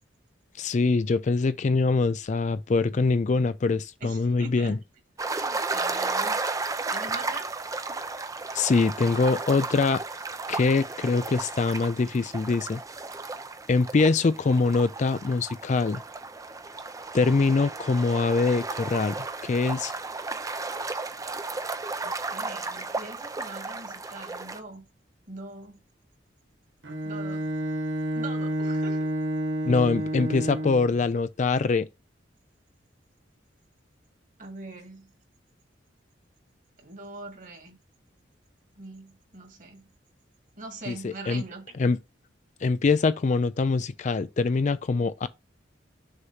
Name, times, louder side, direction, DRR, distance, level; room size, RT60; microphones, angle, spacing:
voice 1, 0.6-4.8 8.5-10.0 10.5-12.8 13.7-16.0 17.1-19.9 29.7-31.9 40.9-41.4 41.8-42.0 42.6-45.3, left 4 dB, 40° left, 0.4 m, -24 dB
voice 2, 4.0-4.8 5.3-6.4 6.9-7.5 22.0-24.9 25.3-25.8 27.0-27.5 28.2-29.0 34.4-35.1 36.8-37.8 38.8-39.8 40.6-41.6, right 3 dB, 45° right, 1.8 m, -42 dB
sound 1, 5.2-24.6, right 3 dB, 20° right, 0.5 m, -34 dB
Bowed string instrument, 26.8-31.0, right 1 dB, 80° right, 1.1 m, -29 dB
6.5 x 3.0 x 5.5 m
head